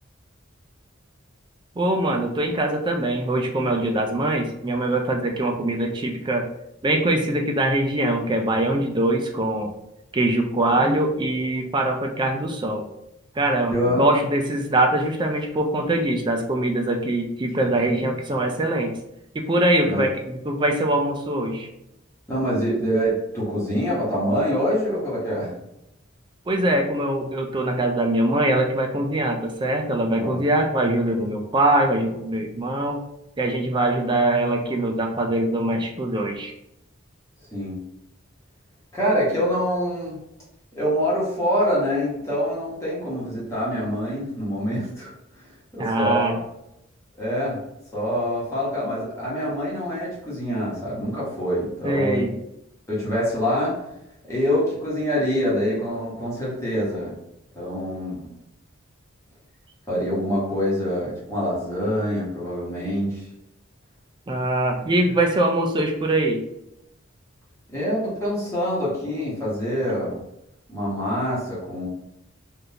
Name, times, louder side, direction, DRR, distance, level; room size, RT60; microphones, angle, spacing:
voice 1, 1.8-6.4 6.8-9.7 10.1-12.8 13.4-19.0 19.3-21.7 26.5-33.0 33.4-36.5 45.8-46.4 51.8-52.3 64.3-66.4, right 1 dB, 25° right, 3 dB, 0.4 m, -23 dB
voice 2, 13.7-14.0 19.9-20.0 22.3-25.5 30.2-30.4 37.5-37.8 38.9-40.2 40.8-45.1 45.4-45.5 45.7-46.4 47.2-47.6 47.9-52.3 52.9-53.8 54.3-57.1 57.5-58.3 59.9-63.2 67.7-70.2 70.7-71.9, equal, 15° left, -8 dB, 1.1 m, -25 dB
3.5 x 2.5 x 2.8 m, 0.84 s
head